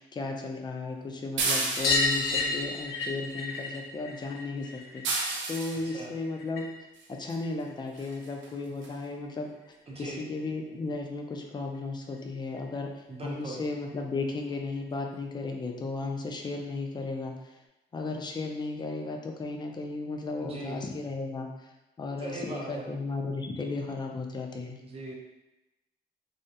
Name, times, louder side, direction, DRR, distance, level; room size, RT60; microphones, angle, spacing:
voice 1, 0.0-5.0 5.5-6.7 7.1-9.5 10.0-12.9 13.2-17.5 17.9-21.7 22.0-24.8, left 3 dB, 20° left, 2 dB, 0.4 m, -35 dB
sound 1, 1.4-2.3 5.0-5.8 7.3-7.4 8.0-8.1 8.4-8.5 8.8-8.9, right 3 dB, 70° right, 0.5 m, -30 dB
sound 2, 1.7-6.9 7.1-8.3 9.7-9.8 10.0-10.1 10.4-10.5 11.7-11.8 12.1-12.2 12.6-12.7 13.9-14.0 14.8-14.9, left 3 dB, 85° left, 0.6 m, -32 dB
voice 2, 2.1-2.6 5.8-6.1 9.9-10.2 13.1-13.6 20.3-20.8 22.2-22.9 24.8-25.1, right 2 dB, 30° right, -2 dB, 0.7 m, -40 dB
2.3 x 2.0 x 2.7 m, 0.98 s
cardioid pair, 90°, 20 cm